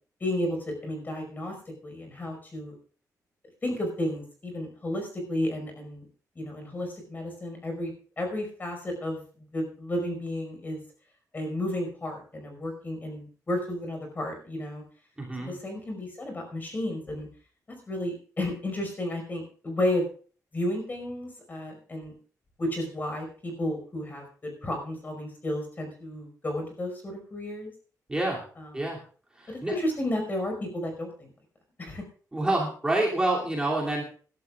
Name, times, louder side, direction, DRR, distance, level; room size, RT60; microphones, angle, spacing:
voice 1, 0.2-1.5 1.8-2.7 3.6-6.1 6.4-7.9 8.2-10.8 11.3-14.8 15.4-17.3 17.9-20.0 20.5-22.1 22.6-27.7 28.6-28.8 29.5-31.3 31.8-32.0, left 1 dB, 30° left, 3 dB, 5.4 m, -32 dB
voice 2, 15.2-15.5 28.1-28.4 28.7-29.0 29.4-29.8 32.3-34.0, right 2 dB, 15° right, -3 dB, 2.9 m, -27 dB
26.5 x 12.0 x 2.5 m, 0.42 s
wide cardioid pair, 135°, 6 cm